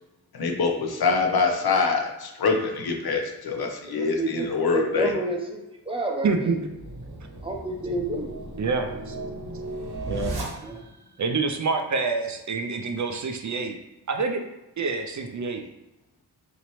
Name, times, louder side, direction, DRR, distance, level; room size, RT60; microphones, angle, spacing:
voice 1, 0.3-5.1, left 4 dB, 65° left, 2 dB, 0.8 m, -24 dB
voice 2, 3.9-6.6 7.4-8.4 10.6-10.8, right 1 dB, 15° right, 0 dB, 0.7 m, -30 dB
voice 3, 6.2-6.7 8.6-9.1 10.1-10.4 11.2-13.8 14.1-14.4 14.8-15.6, right 4 dB, 45° right, 5 dB, 0.5 m, -27 dB
sound 1, 6.5-11.1, right 2 dB, 65° right, 1.0 m, -35 dB
4.1 x 2.8 x 3.1 m, 0.94 s
cardioid pair, 70°, 40 cm